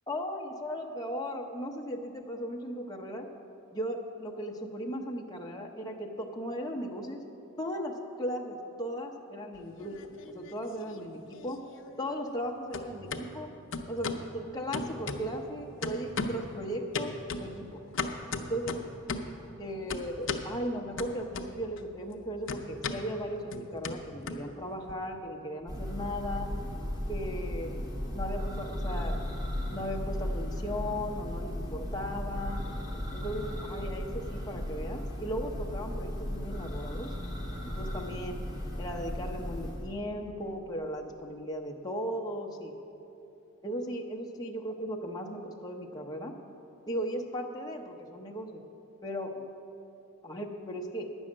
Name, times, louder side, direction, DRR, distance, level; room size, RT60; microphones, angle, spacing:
voice 1, 0.1-3.3 3.7-7.2 7.6-10.0 10.3-11.6 12.0-13.5 13.9-14.1 14.3-17.8 18.5-18.8 19.6-26.5 27.1-27.8 28.1-29.2 29.7-32.6 33.1-37.1 37.6-38.4 38.8-42.7 43.6-46.3 46.9-48.6 49.0-49.3 50.2-51.1, equal, 20° left, 1 dB, 0.8 m, -37 dB
sound 1, 9.6-10.6 10.9-12.5 12.7-13.2 13.7-14.3 14.7-15.5 15.8-16.5 16.9-19.4 19.9-20.5 21.0-21.8 22.1-24.9, left 3 dB, 60° left, 0.6 m, -37 dB
Church bell, 25.7-40.0, equal, 15° right, 1.5 m, -36 dB
9.7 x 6.3 x 8.6 m, 2.9 s
head